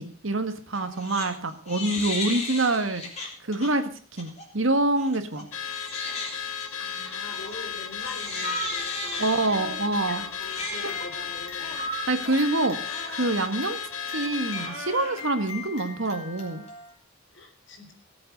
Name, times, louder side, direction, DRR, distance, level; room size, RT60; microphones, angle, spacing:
voice 1, 0.0-3.0 3.4-5.5 9.2-10.2 10.8-10.9 12.1-12.8 13.1-13.8 14.1-16.7, right 2 dB, 65° right, 8 dB, 1.8 m, -26 dB
Crying sobbing, 0.7-1.3 1.6-3.7 4.2-4.4 5.0-16.9, left 3 dB, 30° left, 3.9 m, -38 dB
Car / Alarm, 5.5-14.8, left 7 dB, 85° left, 1.3 m, -35 dB
voice 2, 6.8-11.8 17.3-17.9, left 2 dB, 60° left, 5 dB, 3.6 m, -42 dB
sound 1, 8.4-8.8 11.8-12.2, right 3 dB, 25° right, 2.7 m, -32 dB
18.0 x 8.0 x 6.8 m, 0.43 s
head